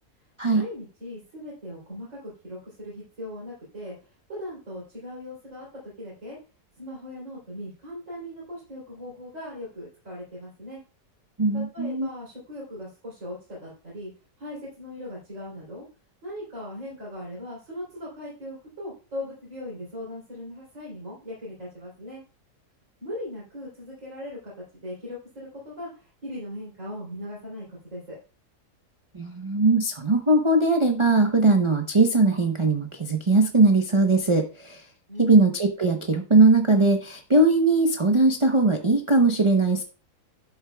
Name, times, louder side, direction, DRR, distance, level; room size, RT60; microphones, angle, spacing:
voice 1, 0.4-4.0 4.3-5.7 6.0-6.4 6.8-10.8 11.5-14.1 14.4-15.8 16.2-22.2 23.0-28.2 35.1-35.3, left 1 dB, 55° right, -5 dB, 4.1 m, -39 dB
voice 2, 11.4-12.1 29.1-34.8 35.2-39.8, right 2 dB, 25° right, 3 dB, 0.7 m, -20 dB
11.5 x 8.0 x 2.3 m, 0.36 s
omnidirectional pair, 1.6 m